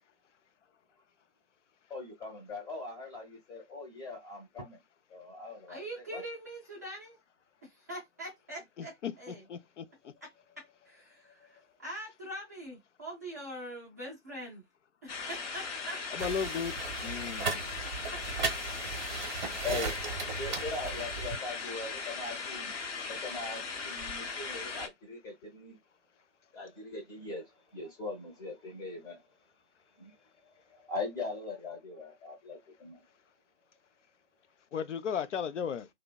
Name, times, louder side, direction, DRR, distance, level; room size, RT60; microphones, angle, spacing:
voice 1, 1.9-4.8 5.1-6.2 10.0-10.1 11.2-11.5 19.6-20.0 20.3-22.7 23.1-25.8 26.5-29.2 30.0-30.1 30.7-33.0, left 3 dB, 10° left, 0.7 m, -41 dB
voice 2, 5.7-7.2 7.6-9.5 10.2-14.6 15.0-16.7 18.1-18.5, right 1 dB, 15° right, 0.3 m, -44 dB
voice 3, 9.5-9.9 16.1-16.7 17.0-17.6 34.7-35.9, left 7 dB, 75° left, 0.5 m, -34 dB
sound 1, 15.1-24.9, left 4 dB, 55° left, 0.8 m, -38 dB
sound 2, 16.2-21.4, right 4 dB, 40° right, 0.8 m, -37 dB
2.6 x 2.1 x 2.2 m
figure-of-eight pair, 125°, 36 cm